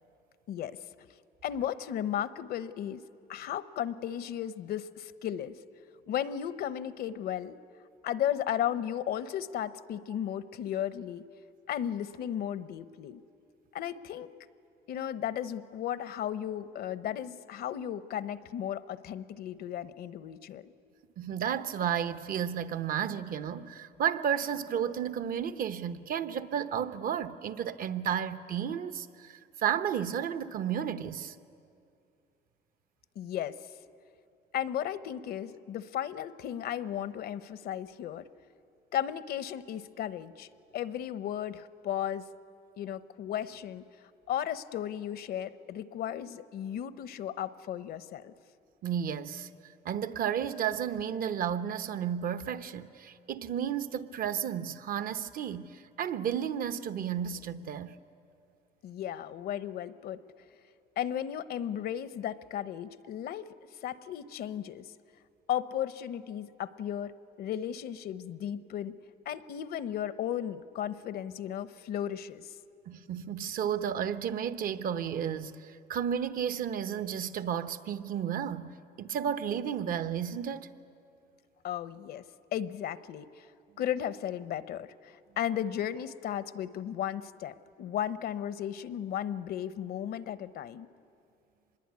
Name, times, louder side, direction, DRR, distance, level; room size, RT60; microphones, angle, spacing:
voice 1, 1.4-3.0 3.3-5.6 6.1-7.6 8.0-11.2 11.7-13.2 13.7-14.3 14.9-20.7 33.2-33.5 34.5-38.3 38.9-40.5 40.7-42.3 42.8-43.8 44.3-48.3 58.8-60.2 61.0-63.5 63.8-64.8 65.5-68.9 69.3-72.5 81.6-82.2 82.5-83.4 83.8-90.9, left 10 dB, 65° left, 0.9 m, -35 dB
voice 2, 21.2-31.3 48.8-49.5 49.8-57.9 72.9-80.7, right 8 dB, 55° right, 1.0 m, -32 dB
25.0 x 21.5 x 9.6 m
cardioid pair, 110°, 17 cm